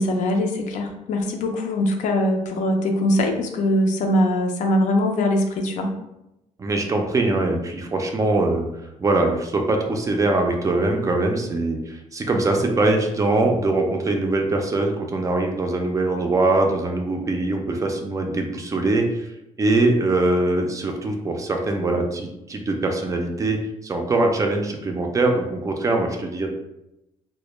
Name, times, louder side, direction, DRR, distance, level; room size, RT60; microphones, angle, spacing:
voice 1, 0.0-5.9, left 1 dB, 70° left, 3 dB, 0.4 m, -22 dB
voice 2, 6.6-8.7 9.0-19.3 19.6-26.5, right 2 dB, 25° right, 3 dB, 0.3 m, -22 dB
2.1 x 2.0 x 3.0 m, 0.90 s
cardioid pair, 120°, 13 cm